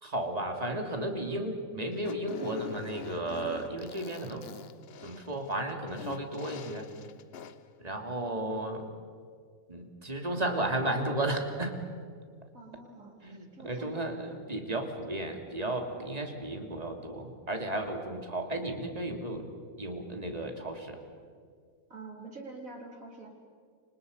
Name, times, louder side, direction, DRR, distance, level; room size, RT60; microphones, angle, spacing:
voice 1, 0.0-4.4 5.0-6.9 7.8-8.9 9.7-11.7 13.2-19.5 19.8-21.0, right 1 dB, 25° right, 4 dB, 2.9 m, -34 dB
Fart, 1.9-7.7, left 8 dB, 50° left, 1.0 m, -45 dB
voice 2, 12.5-14.1 21.9-23.3, right 3 dB, 70° right, 1 dB, 4.6 m, -46 dB
29.0 x 26.5 x 5.5 m, 2.1 s
omnidirectional pair, 1.5 m